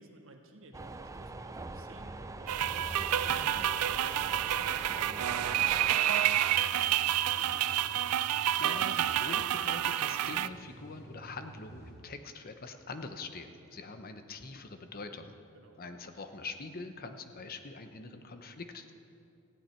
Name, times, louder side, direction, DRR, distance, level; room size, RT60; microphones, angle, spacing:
voice 1, 0.0-8.0 15.5-16.0, right 2 dB, 60° right, 3 dB, 1.6 m, -54 dB
sound 1, 0.7-6.0, right 2 dB, 15° right, 0.5 m, -44 dB
sound 2, 2.5-11.9, equal, 15° left, 4.1 m, -50 dB
sound 3, 2.5-10.5, right 11 dB, 90° right, 0.4 m, -29 dB
voice 2, 8.6-15.4 15.8-18.9, left 3 dB, 40° left, 8 dB, 0.9 m, -44 dB
18.5 x 15.0 x 4.5 m, 2.7 s
head